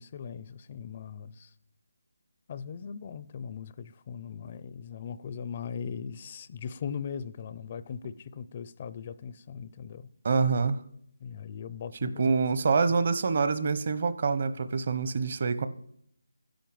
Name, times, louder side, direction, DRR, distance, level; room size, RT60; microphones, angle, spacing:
voice 1, 0.0-1.5 2.5-10.1 11.2-12.3 12.7-13.0, left 7 dB, 30° left, 0.5 m, -39 dB
voice 2, 10.2-10.8 12.0-15.7, right 4 dB, 45° right, 1.0 m, -26 dB
12.0 x 10.5 x 7.8 m
figure-of-eight pair, 165°, 0 cm